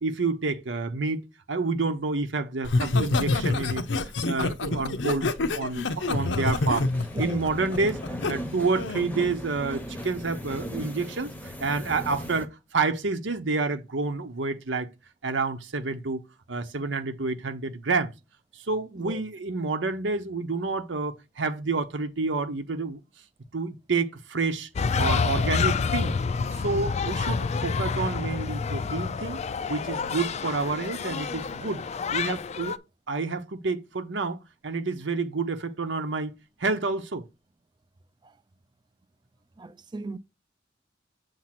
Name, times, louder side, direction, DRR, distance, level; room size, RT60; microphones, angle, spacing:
voice 1, 0.0-3.9 4.2-6.9 7.2-8.0 8.3-14.9 15.2-16.2 16.5-18.1 18.5-23.0 23.5-24.7 25.0-26.1 26.6-29.4 29.7-31.8 32.1-32.8 33.1-36.3 36.6-37.2, right 3 dB, 80° right, 0.9 m, -29 dB
Laughter, 2.6-8.3 8.8-9.1, left 3 dB, 75° left, 0.7 m, -27 dB
sound 1, 6.0-12.5, equal, 10° left, 0.8 m, -38 dB
voice 2, 7.1-7.5 7.8-7.9 19.0-19.2 38.2-38.3 39.6-40.2, right 2 dB, 25° right, 0.5 m, -37 dB
sound 2, 24.7-32.8, left 5 dB, 35° left, 0.4 m, -28 dB
7.4 x 2.7 x 5.9 m
head